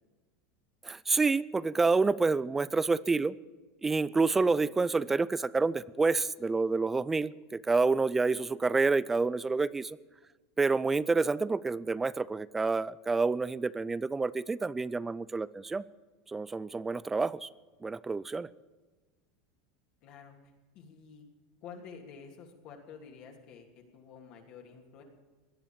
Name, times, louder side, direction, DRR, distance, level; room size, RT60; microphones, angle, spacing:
voice 1, 0.8-3.3 3.8-10.0 10.6-15.8 16.3-17.5 17.8-18.5, right 3 dB, 10° right, 20 dB, 0.4 m, -28 dB
voice 2, 20.0-21.2 21.6-25.0, left 6 dB, 45° left, 1 dB, 3.0 m, -50 dB
17.5 x 11.0 x 7.0 m, 1.3 s
supercardioid pair, 145°, 2 cm